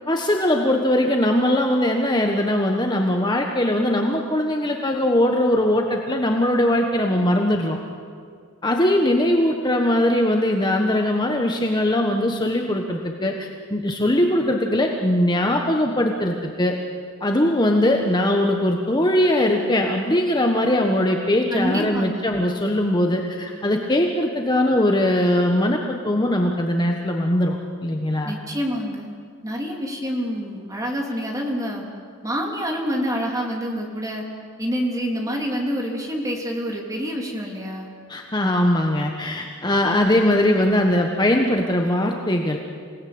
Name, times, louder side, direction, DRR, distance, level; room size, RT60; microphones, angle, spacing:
voice 1, 0.1-7.8 8.6-16.8 17.2-28.3 38.1-42.6, left 1 dB, 20° left, 2 dB, 1.3 m, -21 dB
voice 2, 21.5-22.3 28.2-29.1 29.4-31.9 32.2-34.2 34.6-37.9, equal, 15° right, 0 dB, 3.5 m, -27 dB
27.5 x 18.5 x 8.8 m, 2.2 s
head